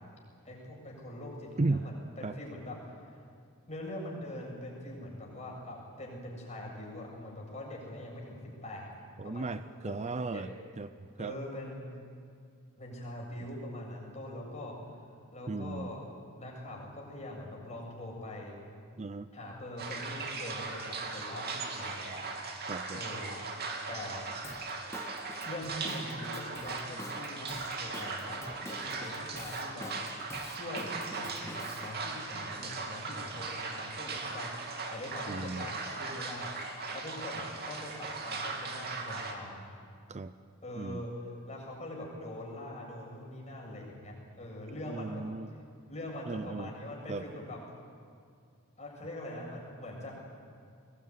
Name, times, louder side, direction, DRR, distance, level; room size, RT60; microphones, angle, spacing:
voice 1, 0.4-3.2 3.7-8.9 9.2-9.5 9.8-9.9 10.3-10.5 11.2-11.8 12.8-15.0 15.3-16.0 16.4-18.5 19.3-22.2 22.9-23.4 23.9-24.2 25.5-29.9 30.5-36.6 36.9-39.7 40.6-45.2 45.9-47.6 48.8-50.1, left 1 dB, 30° left, -2 dB, 7.4 m, -43 dB
voice 2, 9.2-10.5 10.8-10.9 11.2-11.4 15.5-15.9 19.0-19.3 22.7-23.0 35.3-35.7 40.1-40.3 40.8-41.0 44.9-45.5 46.3-46.7 47.1-47.2, right 3 dB, 30° right, 12 dB, 0.5 m, -35 dB
sound 1, 19.8-39.3, right 4 dB, 45° right, 2.7 m, -39 dB
Drum kit / Drum, 24.4-31.9, left 2 dB, 15° left, 0.7 m, -48 dB
22.5 x 20.0 x 9.7 m, 2.4 s
head